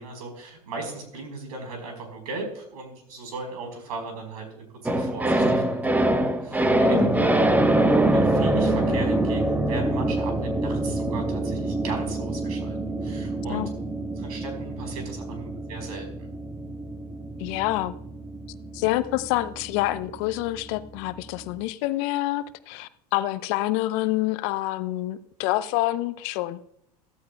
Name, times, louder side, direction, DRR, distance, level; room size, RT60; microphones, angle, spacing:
voice 1, 0.0-7.0 7.8-13.7 14.2-16.3, right 3 dB, 75° right, 4 dB, 4.6 m, -38 dB
sound 1, 4.9-21.2 21.5-21.6, right 1 dB, 10° right, 1.0 m, -25 dB
voice 2, 6.8-7.4 13.5-13.7 17.4-17.9 18.7-26.6, left 17 dB, 55° left, 14 dB, 0.7 m, -27 dB
15.0 x 14.0 x 2.3 m, 0.75 s
hypercardioid pair, 90°, 20 cm